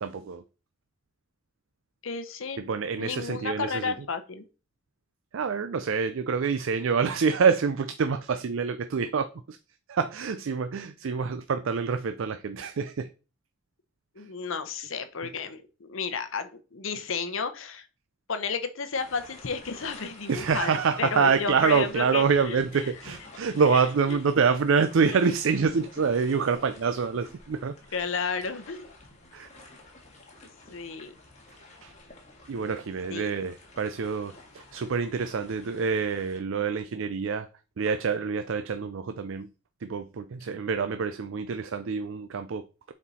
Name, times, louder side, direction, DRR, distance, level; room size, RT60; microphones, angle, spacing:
voice 1, 0.0-0.4 2.6-3.9 5.3-9.6 9.9-13.1 14.2-14.3 20.3-27.7 29.3-29.5 31.8-31.9 32.5-37.5 37.8-39.5 39.8-42.9, right 5 dB, 70° right, 0.4 m, -26 dB
voice 2, 2.0-2.7 2.9-4.4 14.2-17.9 18.3-20.7 21.0-22.6 23.6-23.8 24.1-24.2 27.9-28.9 30.7-31.1 33.1-33.3, left 5 dB, 70° left, 0.8 m, -32 dB
sound 1, 18.9-36.4, left 2 dB, 35° left, 1.6 m, -50 dB
7.1 x 4.4 x 4.1 m
head